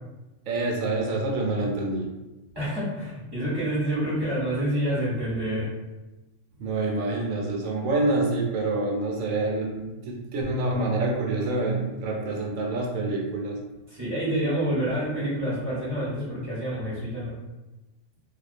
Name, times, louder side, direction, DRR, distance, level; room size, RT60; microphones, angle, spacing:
voice 1, 0.5-2.1 6.6-13.6, right 2 dB, 75° right, -1 dB, 0.9 m, -27 dB
voice 2, 2.5-5.7 13.9-17.3, right 1 dB, 25° right, -9 dB, 0.7 m, -28 dB
2.3 x 2.1 x 2.4 m, 1.1 s
omnidirectional pair, 1.4 m